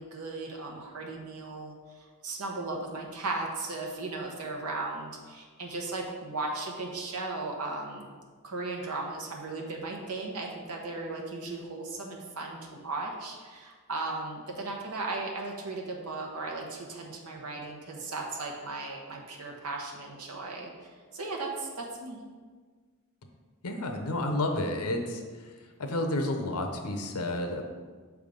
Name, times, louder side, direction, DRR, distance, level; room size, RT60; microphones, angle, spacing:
voice 1, 0.0-8.1 8.4-22.2, right 3 dB, 80° right, 0 dB, 1.0 m, -36 dB
voice 2, 23.6-25.5 25.8-27.6, left 1 dB, 75° left, 5 dB, 0.8 m, -31 dB
6.5 x 3.5 x 5.2 m, 1.5 s
head